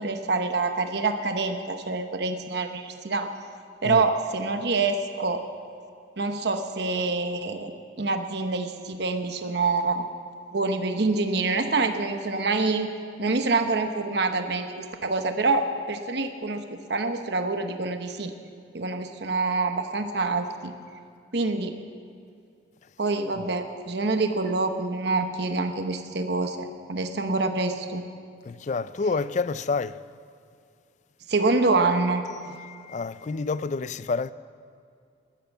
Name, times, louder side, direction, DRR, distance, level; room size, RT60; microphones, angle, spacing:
voice 1, 0.0-3.3 3.8-5.4 6.2-7.7 8.0-10.1 10.5-12.9 13.2-18.3 18.7-20.7 21.3-21.8 23.0-28.0 31.3-32.2, right 3 dB, 60° right, 0.9 m, -26 dB
voice 2, 28.4-30.0 32.6-34.3, left 4 dB, 40° left, 0.3 m, -29 dB
15.0 x 12.5 x 7.2 m
head